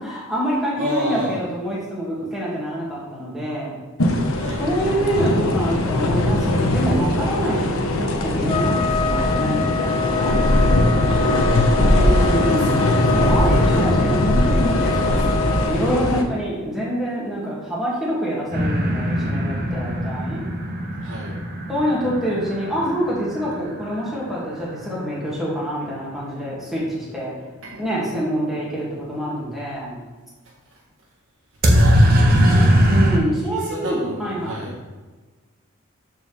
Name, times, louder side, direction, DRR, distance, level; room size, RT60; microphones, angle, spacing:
voice 1, 0.0-3.7 4.6-10.4 11.9-12.8 13.1-20.4 21.7-27.3 27.8-30.0 32.9-34.7, equal, ahead, -8 dB, 2.5 m, -26 dB
voice 2, 0.8-1.4 4.3-4.8 11.1-13.2 21.0-21.4 27.6-27.9 31.7-32.8 33.2-34.8, equal, 60° right, -6 dB, 1.7 m, -31 dB
sound 1, 4.0-16.2, left 1 dB, 75° left, 1.0 m, -20 dB
Trumpet, 8.5-15.8, left 5 dB, 25° left, 0.3 m, -26 dB
sound 2, 18.5-24.3 31.6-33.2, equal, 40° right, 1.1 m, -20 dB
13.5 x 4.6 x 3.6 m, 1.3 s
head